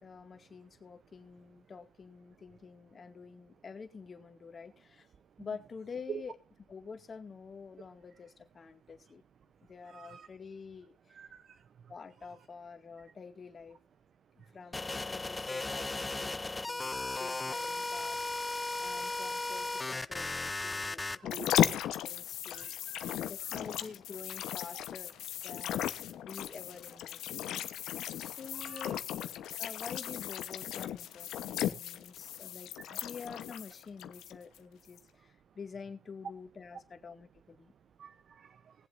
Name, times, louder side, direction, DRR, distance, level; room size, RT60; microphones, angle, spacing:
voice 1, 0.0-5.1 5.4-6.4 6.7-9.2 9.7-11.2 11.9-13.8 14.5-18.3 18.8-22.8 23.3-25.2 25.4-25.8 26.1-27.5 28.1-29.0 29.6-37.7, left 5 dB, 40° left, 2.0 m, -48 dB
voice 2, 9.9-10.3 11.1-11.5 21.2-21.5 22.5-23.1 28.6-28.9 32.9-33.0 38.0-38.6, right 8 dB, 55° right, 0.7 m, -46 dB
sound 1, 14.7-21.2, left 2 dB, 20° left, 0.5 m, -36 dB
sound 2, 21.2-34.6 35.0-35.1, left 11 dB, 75° left, 1.0 m, -36 dB
20.5 x 7.6 x 2.6 m
cardioid pair, 90°, 0 cm